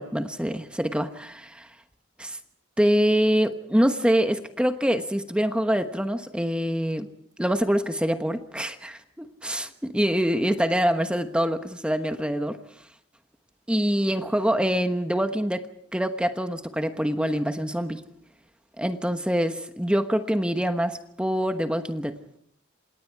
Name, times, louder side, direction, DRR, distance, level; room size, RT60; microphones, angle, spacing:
voice 1, 0.0-1.7 2.2-2.4 2.8-7.1 7.4-12.6 13.7-15.7 15.9-18.0 18.8-22.2, equal, 5° right, 8 dB, 1.1 m, -25 dB
28.0 x 27.0 x 4.7 m, 0.69 s
head